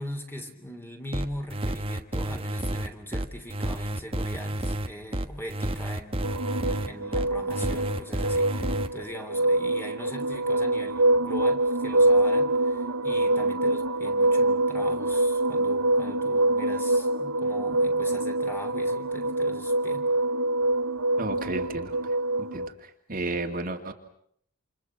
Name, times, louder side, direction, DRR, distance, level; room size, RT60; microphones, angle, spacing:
voice 1, 0.0-20.0, equal, 10° left, 5 dB, 3.2 m, -41 dB
sound 1, 1.1-8.9, right 1 dB, 25° right, 1.3 m, -30 dB
sound 2, 6.2-22.7, right 2 dB, 85° right, 1.0 m, -25 dB
voice 2, 21.2-21.9 22.5-22.7 23.1-23.9, right 2 dB, 40° right, 4 dB, 2.3 m, -31 dB
29.0 x 28.0 x 6.0 m, 0.68 s
head